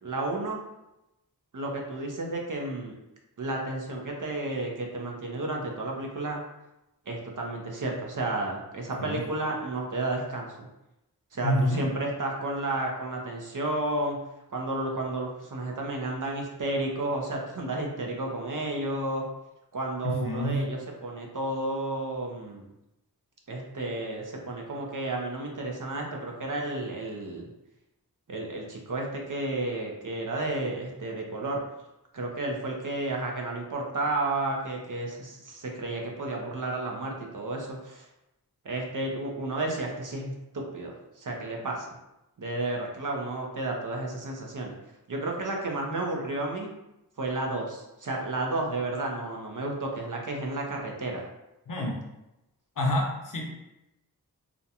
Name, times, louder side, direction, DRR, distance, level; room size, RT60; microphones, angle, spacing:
voice 1, 0.0-0.6 1.5-2.9 3.4-6.4 7.1-10.7 11.3-14.2 14.5-19.3 19.7-22.7 23.5-27.5 28.3-31.6 32.1-38.1 38.6-41.9 42.4-44.8 45.1-46.7 47.2-51.3, right 2 dB, 55° right, 0 dB, 0.6 m, -32 dB
voice 2, 11.4-11.8 20.0-20.6 51.7-52.0 52.8-53.5, equal, 55° left, 0 dB, 0.6 m, -27 dB
2.5 x 2.1 x 2.8 m, 0.92 s
wide cardioid pair, 45°, 39 cm